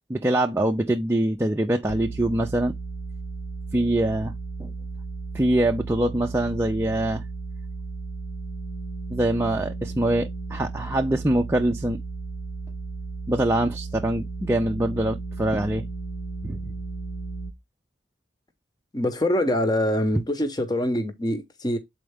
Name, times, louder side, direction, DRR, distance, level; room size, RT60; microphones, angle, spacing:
voice 1, 0.1-2.7 3.7-4.3 4.6-4.7 5.3-7.2 9.1-12.0 13.3-15.9 16.4-16.7, right 1 dB, 15° right, 0.5 m, -24 dB
sound 1, 1.9-17.5, right 4 dB, 75° left, 1.0 m, -34 dB
voice 2, 18.9-21.8, left 1 dB, 20° left, 0.9 m, -24 dB
7.4 x 4.3 x 3.5 m
head